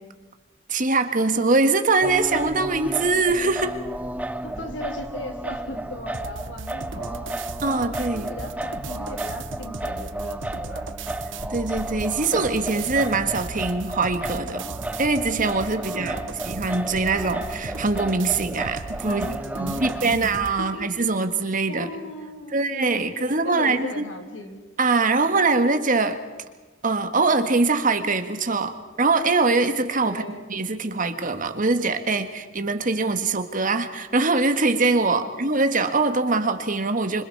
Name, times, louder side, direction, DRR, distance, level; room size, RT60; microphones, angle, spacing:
voice 1, 0.7-3.8 7.6-8.3 11.5-14.7 15.0-19.3 19.6-21.9 22.5-24.1 24.8-26.2 26.8-30.2 30.5-37.2, right 3 dB, 45° right, 8 dB, 1.7 m, -23 dB
Singing, 2.0-20.1, right 1 dB, 10° right, 0.6 m, -33 dB
voice 2, 4.4-7.3 7.7-10.8 15.8-16.5 19.0-20.9 21.7-24.6 30.0-30.5 35.0-35.4, left 1 dB, 75° left, 4 dB, 3.3 m, -38 dB
sound 1, 6.1-20.6, right 4 dB, 85° right, 1.0 m, -38 dB
26.0 x 26.0 x 4.8 m, 1.3 s
head